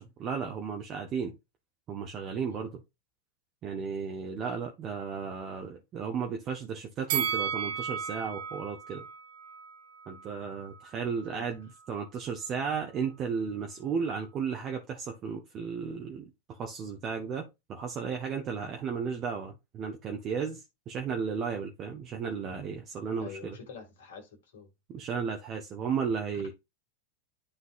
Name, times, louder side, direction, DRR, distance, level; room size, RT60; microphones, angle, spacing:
voice 1, 0.0-1.3 1.9-2.8 3.6-9.1 10.1-23.6 24.9-26.5, right 6 dB, 30° right, 1.1 m, -34 dB
Bell, 7.1-10.3 10.6-10.8, right 8 dB, 55° right, 1.0 m, -34 dB
voice 2, 23.2-24.7 26.3-26.5, left 5 dB, 55° left, 2.1 m, -46 dB
11.5 x 3.9 x 2.5 m
figure-of-eight pair, 90°, 0 cm